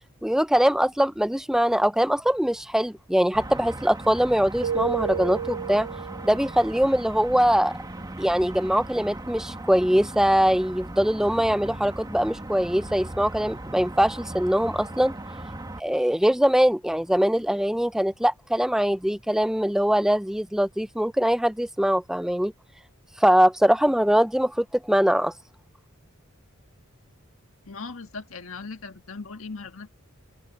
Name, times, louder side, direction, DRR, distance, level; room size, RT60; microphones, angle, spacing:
voice 1, 0.2-5.9 6.2-7.7 8.2-15.1 15.8-22.5 23.2-25.3, equal, ahead, 0.5 m, -22 dB
sound 1, 3.3-15.8, right 1 dB, 20° right, 1.2 m, -38 dB
Keyboard (musical), 4.6-6.6, right 8 dB, 65° right, 0.4 m, -31 dB
voice 2, 27.6-29.9, left 4 dB, 80° left, 1.5 m, -38 dB
open air
head